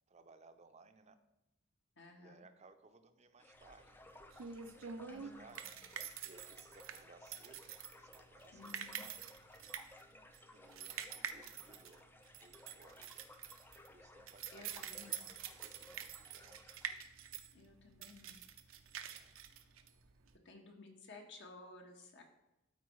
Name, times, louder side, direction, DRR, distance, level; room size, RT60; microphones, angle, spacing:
voice 1, 0.1-1.2 2.2-4.0 4.8-5.7 6.2-9.2 10.5-12.1 12.4-13.3 13.9-15.1 15.5-16.6 19.1-19.4, right 3 dB, 35° right, 9 dB, 0.5 m, -63 dB
voice 2, 2.0-2.5 5.1-5.7 8.5-9.1 14.5-15.4 17.5-18.4 20.4-22.2, left 3 dB, 60° left, 3 dB, 1.3 m, -56 dB
sound 1, 3.4-17.0, left 1 dB, 10° left, 0.4 m, -60 dB
sound 2, 3.6-20.3, right 8 dB, 90° right, 0.6 m, -47 dB
12.5 x 4.6 x 3.1 m, 0.92 s
head